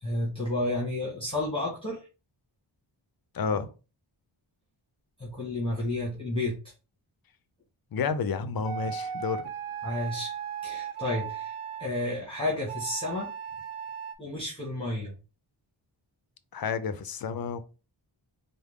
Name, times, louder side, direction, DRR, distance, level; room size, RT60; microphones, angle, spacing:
voice 1, 0.0-2.0 5.2-6.6 9.8-10.3 10.6-13.3 14.2-15.1, left 1 dB, 10° left, 1.5 m, -31 dB
voice 2, 3.3-3.7 7.9-9.5 16.5-17.6, left 5 dB, 50° left, 0.5 m, -30 dB
sound 1, 8.6-11.9 12.7-14.2, right 8 dB, 85° right, 0.6 m, -36 dB
4.6 x 2.1 x 3.5 m
wide cardioid pair, 75°, 48 cm